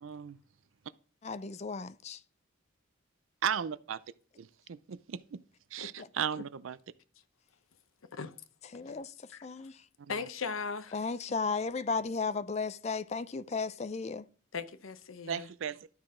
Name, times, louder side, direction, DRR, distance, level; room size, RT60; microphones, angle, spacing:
voice 1, 0.0-0.4 3.4-4.0 4.4-5.4 5.7-6.8 10.0-10.3 15.3-15.9, right 8 dB, 75° right, 0.4 m, -36 dB
voice 2, 1.2-2.2 8.7-9.1 9.4-9.8 10.9-14.3, left 4 dB, 30° left, 0.4 m, -34 dB
voice 3, 10.1-11.0 14.5-15.5, left 5 dB, 85° left, 0.8 m, -38 dB
12.0 x 5.9 x 3.7 m
head